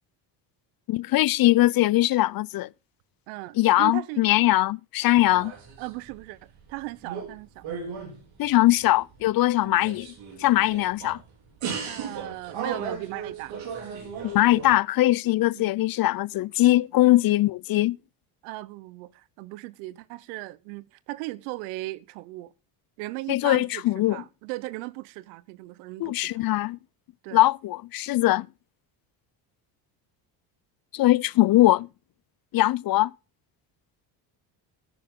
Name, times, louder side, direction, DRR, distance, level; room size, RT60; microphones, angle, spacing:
voice 1, 0.9-2.7 3.6-5.5 8.4-10.1 10.4-11.2 14.2-18.0 23.3-24.2 26.0-26.8 27.3-28.5 30.9-31.9 32.5-33.1, left 16 dB, 45° left, 0.5 m, -21 dB
voice 2, 3.3-4.3 5.3-6.4 6.7-7.6 9.6-9.8 11.8-13.6 15.5-15.7 17.0-17.2 18.4-22.5 23.0-26.3 27.2-27.4, right 20 dB, 90° right, 0.9 m, -37 dB
sound 1, 5.2-6.2 6.6-7.4 7.6-9.2 9.7-11.2 11.6-14.7, right 6 dB, 70° right, 4.2 m, -36 dB
14.0 x 10.5 x 3.7 m
supercardioid pair, 80°, 49 cm